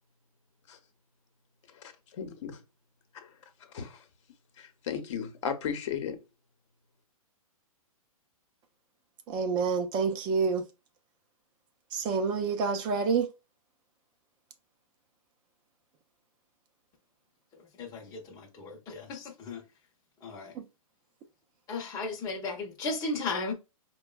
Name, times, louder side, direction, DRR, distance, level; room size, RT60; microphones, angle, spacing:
voice 1, 2.2-2.5 3.1-3.3 3.7-4.0 4.6-6.2, left 7 dB, 55° left, 0.9 m, -35 dB
voice 2, 9.3-10.6 11.9-13.3 20.5-20.6, right 5 dB, 25° right, 0.5 m, -28 dB
voice 3, 17.8-19.6 20.2-20.5 21.7-23.5, left 3 dB, 20° left, 0.8 m, -35 dB
5.0 x 2.2 x 2.3 m
hypercardioid pair, 130°, 19 cm